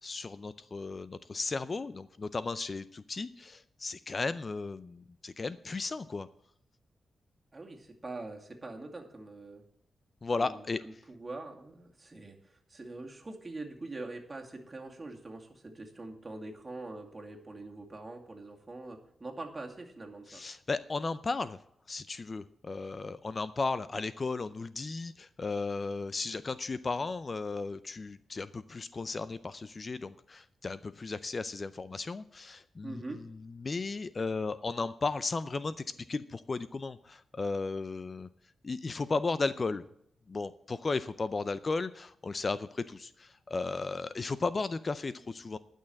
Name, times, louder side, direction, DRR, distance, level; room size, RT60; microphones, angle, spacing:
voice 1, 0.0-6.3 10.2-11.0 20.3-21.6 21.9-38.3 38.6-39.8 40.3-45.6, left 3 dB, 35° left, 15 dB, 0.5 m, -35 dB
voice 2, 7.5-9.6 10.4-20.4 32.8-33.2, right 2 dB, 25° right, 1 dB, 2.4 m, -44 dB
11.0 x 6.4 x 8.6 m, 0.71 s
cardioid pair, 95°, 0 cm